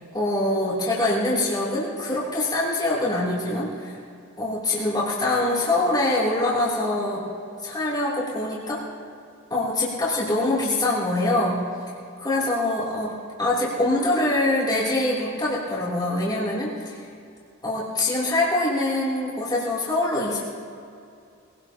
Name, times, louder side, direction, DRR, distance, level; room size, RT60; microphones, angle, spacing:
voice 1, 0.1-4.0 4.4-7.2 7.6-8.8 9.5-11.6 12.2-13.1 13.4-16.9 17.6-20.4, left 2 dB, 20° left, -8 dB, 3.4 m, -24 dB
22.5 x 18.0 x 3.0 m, 2.4 s
head